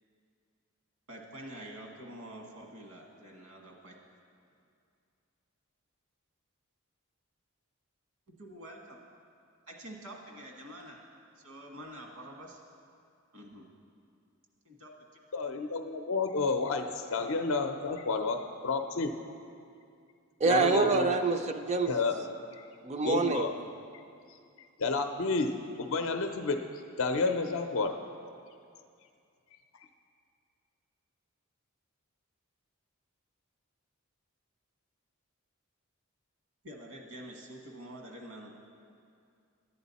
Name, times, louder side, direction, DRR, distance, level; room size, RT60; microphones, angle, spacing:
voice 1, 1.1-3.9 8.3-9.0 9.7-11.0 11.4-12.6 13.3-13.7 14.6-14.9 36.6-38.5, right 1 dB, 80° right, 0 dB, 1.4 m, -47 dB
voice 2, 15.3-16.9 17.1-18.4 18.6-19.1 20.4-21.2 21.9-22.3 23.0-23.5 24.8-25.5 25.8-26.6 27.0-27.9, left 4 dB, 65° left, 6 dB, 0.5 m, -30 dB
voice 3, 20.4-21.9 22.8-23.5, right 4 dB, 30° right, 7 dB, 0.4 m, -26 dB
11.5 x 7.9 x 4.1 m, 2.4 s
head